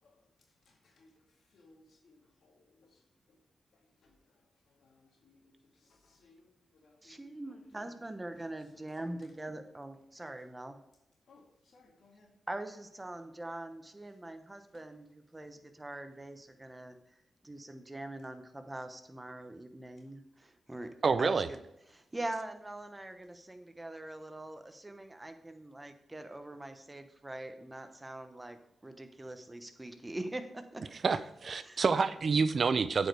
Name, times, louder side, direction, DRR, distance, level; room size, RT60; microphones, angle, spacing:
voice 1, 0.7-1.1 1.5-2.2 2.4-3.0 3.3-3.4 4.0-4.1 4.8-5.5 5.8-8.0 8.7-9.4 11.3-12.3 14.7-14.8, left 2 dB, 75° left, 1 dB, 2.0 m, -63 dB
voice 2, 7.0-10.8 12.5-17.0 17.4-20.9 21.2-21.6 21.9-30.8 31.6-31.8, right 1 dB, 20° right, 8 dB, 1.0 m, -43 dB
voice 3, 21.0-21.5 31.0-33.1, right 5 dB, 60° right, 13 dB, 0.5 m, -28 dB
8.7 x 5.2 x 4.7 m, 0.83 s
cardioid pair, 50°, 0 cm